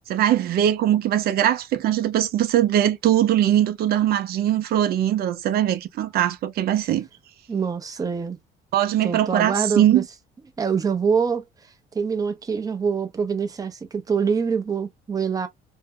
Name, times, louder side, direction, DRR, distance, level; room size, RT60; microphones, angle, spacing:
voice 1, 0.1-7.1 8.7-10.0, right 11 dB, 65° right, 0.7 m, -21 dB
voice 2, 7.5-8.4 9.0-10.0 10.6-11.4 11.9-15.5, right 6 dB, 20° right, 0.7 m, -25 dB
2.8 x 2.2 x 3.6 m
cardioid pair, 110°, 17 cm